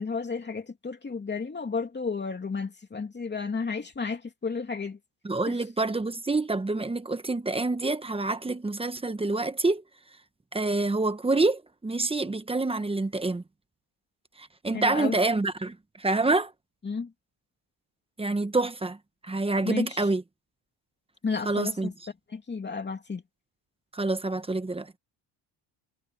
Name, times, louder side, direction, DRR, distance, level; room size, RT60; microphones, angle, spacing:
voice 1, 0.0-5.0 5.4-5.6 14.7-15.2 16.8-17.1 19.6-20.1 21.2-21.9 22.3-23.2, left 5 dB, 25° left, 2.9 m, -32 dB
voice 2, 5.2-9.8 10.5-13.4 14.4-16.5 18.2-19.0 19.2-20.2 21.4-21.9 23.9-24.9, right 2 dB, 10° right, 1.1 m, -27 dB
cardioid pair, 135°, 45 cm